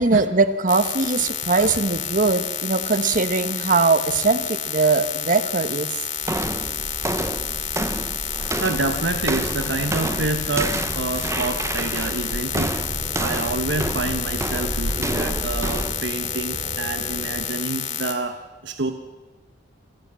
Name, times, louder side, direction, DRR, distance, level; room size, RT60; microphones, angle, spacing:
voice 1, 0.0-5.9, right 4 dB, 45° right, 11 dB, 1.2 m, -21 dB
sound 1, 0.7-18.1, left 9 dB, 65° left, 2.7 m, -30 dB
sound 2, 6.2-16.1, right 2 dB, 15° right, 0.7 m, -29 dB
voice 2, 8.6-12.7 13.2-18.4 18.6-18.9, right 3 dB, 70° right, 6 dB, 1.2 m, -27 dB
sound 3, 8.7-17.5, equal, 45° left, 4.7 m, -37 dB
28.0 x 14.5 x 7.6 m, 1.2 s
head